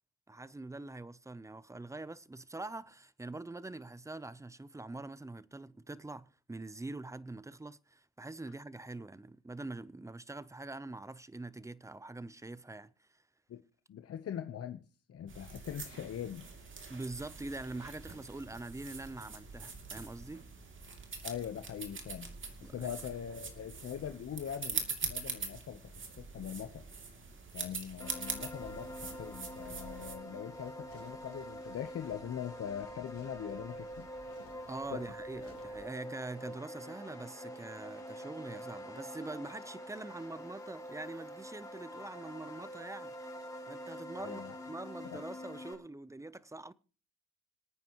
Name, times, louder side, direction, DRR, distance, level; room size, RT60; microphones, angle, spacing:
voice 1, 0.3-13.2 16.9-20.4 22.6-22.9 34.7-43.1 43.7-46.7, right 2 dB, 10° right, 0.6 m, -44 dB
voice 2, 13.9-14.8 15.1-16.5 21.2-22.3 22.6-25.8 26.2-26.8 27.5-34.1 34.9-35.0 44.2-44.5 45.1-45.2, left 9 dB, 50° left, 0.9 m, -42 dB
sound 1, 15.3-30.2, right 5 dB, 40° right, 2.8 m, -43 dB
sound 2, 28.0-45.7, equal, 10° left, 4.2 m, -46 dB
sound 3, 30.0-35.8, left 5 dB, 85° left, 3.9 m, -59 dB
26.5 x 9.2 x 3.0 m
cardioid pair, 90°, 30 cm